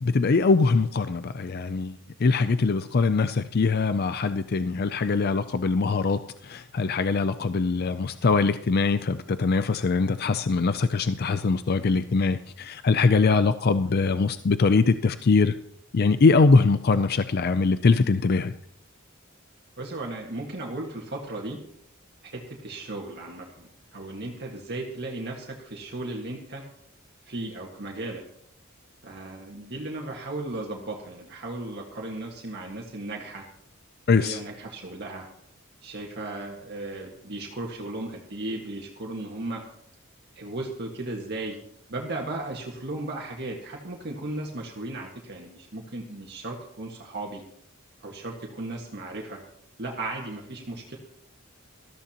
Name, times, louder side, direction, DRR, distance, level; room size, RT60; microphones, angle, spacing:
voice 1, 0.0-15.6 15.9-18.5 34.1-34.4, left 4 dB, 50° left, 11 dB, 0.5 m, -22 dB
voice 2, 19.8-21.6 22.3-26.6 27.3-28.2 29.0-33.5 34.2-35.3 35.8-39.6 40.4-41.6 41.9-47.4 48.0-49.4 49.8-51.0, right 2 dB, 55° right, -1 dB, 1.8 m, -36 dB
20.0 x 14.0 x 3.0 m, 0.71 s
head